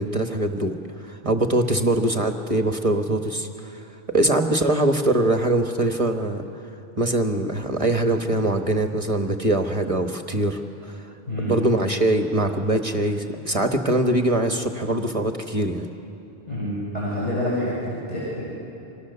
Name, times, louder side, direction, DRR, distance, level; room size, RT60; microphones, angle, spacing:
voice 1, 0.0-3.8 4.1-6.4 7.0-11.0 11.4-15.9, right 1 dB, 30° right, 5 dB, 1.3 m, -23 dB
voice 2, 16.5-18.4, left 1 dB, 40° left, -8 dB, 6.9 m, -27 dB
29.0 x 25.5 x 6.9 m, 2.9 s
omnidirectional pair, 1.1 m